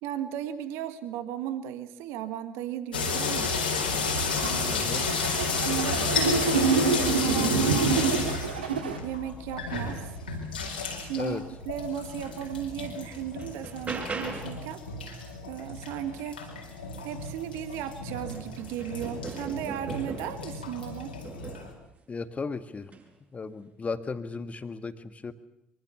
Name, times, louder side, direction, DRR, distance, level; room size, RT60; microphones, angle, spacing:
voice 1, 0.0-3.5 4.4-5.1 5.5-6.0 6.6-8.3 9.0-10.1 11.0-14.8 15.4-16.4 17.0-21.1, right 10 dB, 60° right, 11 dB, 1.6 m, -36 dB
sound 1, 2.9-21.7, left 4 dB, 80° left, 4.5 m, -32 dB
sound 2, 3.7-9.0, right 5 dB, 75° right, 2.4 m, -27 dB
voice 2, 4.7-5.1 11.1-11.4 22.1-22.9 23.3-25.3, left 4 dB, 25° left, 10 dB, 1.9 m, -35 dB
sound 3, 12.3-12.4 12.8-14.7 17.0-17.1 17.6-20.5 21.2-21.8 22.8-23.1, right 3 dB, 30° right, 7.9 m, -39 dB
24.0 x 24.0 x 7.0 m, 0.80 s
figure-of-eight pair, 55°, 5 cm